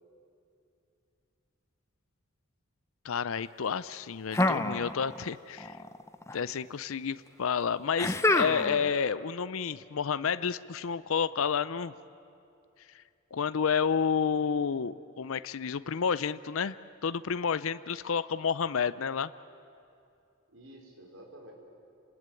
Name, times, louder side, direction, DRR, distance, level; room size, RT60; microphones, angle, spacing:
voice 1, 3.0-5.8 6.3-11.9 12.9-13.0 13.3-16.8 17.0-19.3, left 6 dB, 75° left, 15 dB, 0.5 m, -30 dB
sound 1, 4.3-5.3 5.6-6.4 8.0-8.9, left 2 dB, 15° left, 0.7 m, -28 dB
voice 2, 11.0-11.4 14.3-14.5 20.5-21.5, right 1 dB, 80° right, 0 dB, 4.9 m, -52 dB
29.0 x 20.0 x 9.1 m, 2.6 s
head